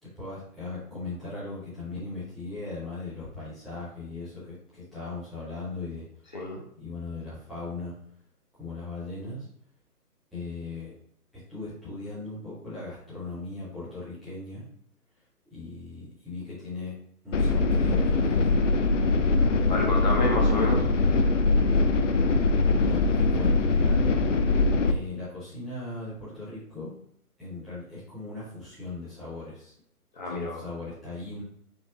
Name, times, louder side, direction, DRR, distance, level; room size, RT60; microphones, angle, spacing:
voice 1, 0.0-6.1 6.8-7.9 8.6-9.5 10.3-10.9 11.5-14.6 15.5-16.9 17.2-18.7 22.8-24.0 24.9-26.9 27.4-29.7 30.2-31.4, left 3 dB, ahead, -14 dB, 0.5 m, -38 dB
sound 1, 17.3-24.9, left 3 dB, 55° left, 0.5 m, -22 dB
voice 2, 19.7-20.8 21.1-21.3 30.2-30.6, left 1 dB, 30° left, -1 dB, 0.8 m, -29 dB
4.0 x 3.4 x 3.4 m, 0.68 s
figure-of-eight pair, 145°, 47 cm